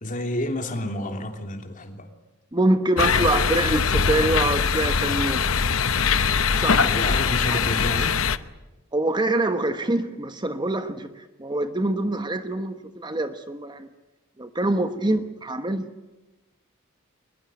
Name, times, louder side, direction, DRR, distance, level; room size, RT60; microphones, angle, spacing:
voice 1, 0.0-2.1 6.8-8.2, left 1 dB, 40° left, 5 dB, 3.3 m, -29 dB
voice 2, 2.5-5.4 6.5-6.9 7.5-7.6 8.9-11.1 11.4-13.9 14.4-15.9, right 2 dB, 20° right, 8 dB, 1.2 m, -25 dB
sound 1, 3.0-8.4, left 6 dB, 70° left, 0.9 m, -22 dB
22.0 x 21.5 x 9.3 m, 1.1 s
head